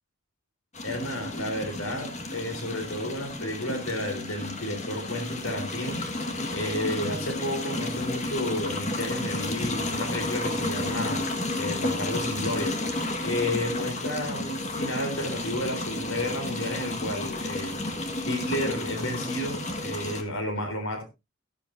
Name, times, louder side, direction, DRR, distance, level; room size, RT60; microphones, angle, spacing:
sound 1, 0.7-20.2, left 2 dB, 35° left, 1.7 m, -32 dB
voice 1, 0.8-6.0 6.5-11.2 11.5-12.8 13.2-17.8 18.3-21.0, left 1 dB, 75° left, 5 dB, 3.8 m, -32 dB
13.5 x 13.0 x 2.6 m, 0.24 s
head